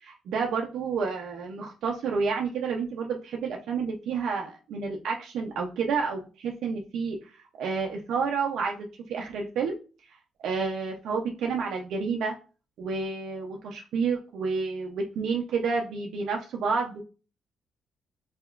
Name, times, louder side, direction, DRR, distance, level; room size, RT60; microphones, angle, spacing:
voice 1, 0.0-7.2 7.5-9.7 10.4-12.3 12.8-17.0, right 5 dB, 75° right, 1 dB, 0.5 m, -30 dB
4.1 x 2.8 x 2.4 m, 0.34 s
cardioid pair, 90°, 0 cm